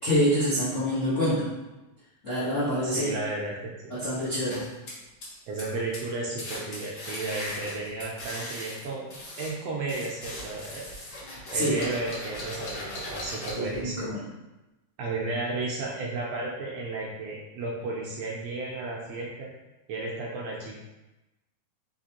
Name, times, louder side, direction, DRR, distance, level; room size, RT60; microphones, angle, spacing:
voice 1, 0.0-1.5 2.2-3.1 3.9-4.7 11.5-11.9 13.6-14.2, equal, 70° left, -11 dB, 0.7 m, -26 dB
voice 2, 2.8-4.0 5.5-10.9 11.5-14.1 15.0-19.5 19.9-20.8, right 2 dB, 75° right, -3 dB, 1.5 m, -33 dB
sound 1, 4.5-5.7 5.9-6.1 6.4-9.5 9.9-13.8, left 1 dB, 55° left, 1.4 m, -39 dB
5.0 x 3.3 x 2.8 m, 1.0 s
omnidirectional pair, 3.3 m